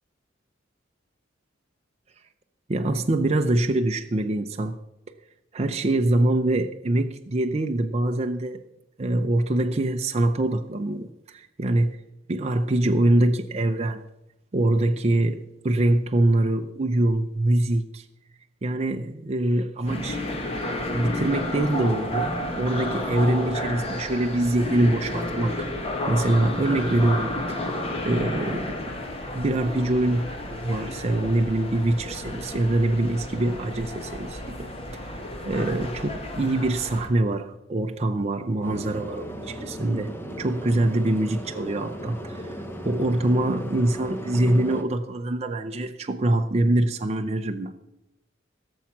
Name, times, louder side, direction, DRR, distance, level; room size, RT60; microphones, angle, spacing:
voice 1, 2.7-4.8 5.5-8.6 9.0-12.0 12.3-14.0 14.5-18.0 18.6-20.2 20.9-25.7 26.1-27.6 28.0-28.9 29.3-34.7 34.9-35.1 35.5-42.6 42.8-47.8, right 1 dB, 35° right, 0.5 m, -24 dB
sound 1, 19.9-37.1, left 1 dB, 30° left, 1.7 m, -31 dB
Ambiente - interior de vehiculo, 38.6-44.8, equal, 10° left, 1.1 m, -36 dB
16.5 x 7.2 x 6.0 m
head